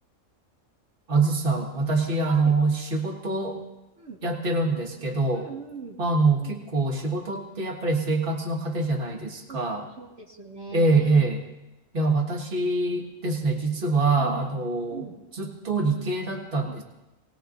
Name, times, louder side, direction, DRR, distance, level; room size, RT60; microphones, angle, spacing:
voice 1, 1.1-3.6 4.2-5.5 6.0-9.8 10.7-11.4 11.9-15.0 15.3-16.8, right 3 dB, 45° right, -1 dB, 1.9 m, -25 dB
voice 2, 2.2-2.6 4.0-4.2 5.3-6.0 6.4-6.6 9.5-9.6 10.0-11.3 14.2-14.6 14.9-15.2 16.7-16.8, right 4 dB, 60° right, -3 dB, 1.9 m, -41 dB
27.5 x 19.0 x 2.6 m, 0.98 s
omnidirectional pair, 1.3 m